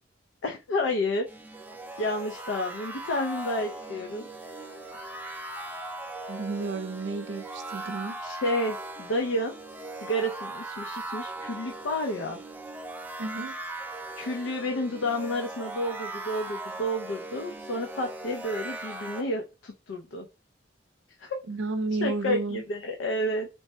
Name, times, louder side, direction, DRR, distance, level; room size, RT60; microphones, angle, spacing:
voice 1, 0.4-1.3 2.0-4.3 8.2-9.6 10.0-12.4 14.2-20.3 21.2-21.4 22.0-23.5, left 1 dB, 80° left, 0.4 m, -30 dB
sound 1, 1.3-19.2, right 2 dB, 10° right, 0.4 m, -39 dB
voice 2, 6.3-8.2 13.2-13.6 21.5-22.6, right 3 dB, 75° right, 0.5 m, -32 dB
3.2 x 2.1 x 2.6 m
head